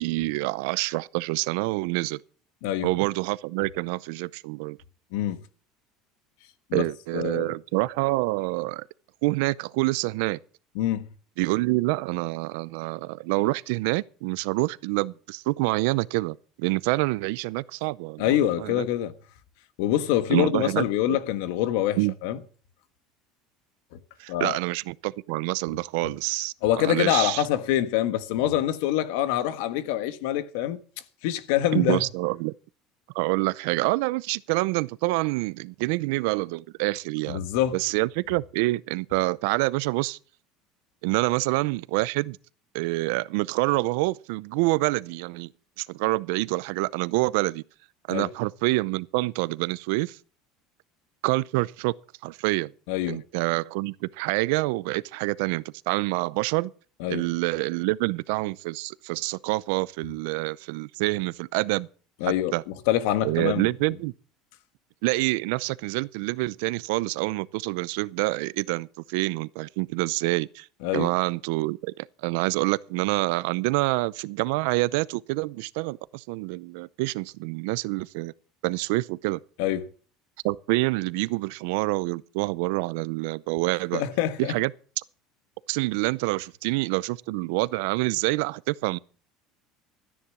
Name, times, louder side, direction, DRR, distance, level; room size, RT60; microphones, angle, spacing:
voice 1, 0.0-2.2 2.8-4.8 6.7-8.8 9.2-10.4 11.4-18.9 20.3-21.2 22.0-22.1 24.2-27.4 31.7-32.5 33.1-37.5 37.7-40.2 41.0-42.4 42.7-45.5 45.8-47.6 48.1-50.2 51.2-51.9 52.2-52.7 53.1-56.7 57.1-61.9 62.3-62.6 63.2-64.1 65.0-70.7 70.9-78.3 78.6-79.4 80.4-84.0 84.5-84.7 85.7-89.0, right 22 dB, 80° right, 0.5 m, -27 dB
voice 2, 7.1-7.5 10.7-11.1 18.2-19.1 19.8-22.4 24.3-24.6 26.6-30.8 31.2-32.0 37.3-37.8 48.1-48.3 52.9-53.2 57.0-57.2 62.2-62.5 62.9-63.7 70.8-71.1 79.6-79.9 83.9-84.5, left 12 dB, 80° left, 1.4 m, -25 dB
13.5 x 10.0 x 6.1 m
cardioid pair, 150°, 0 cm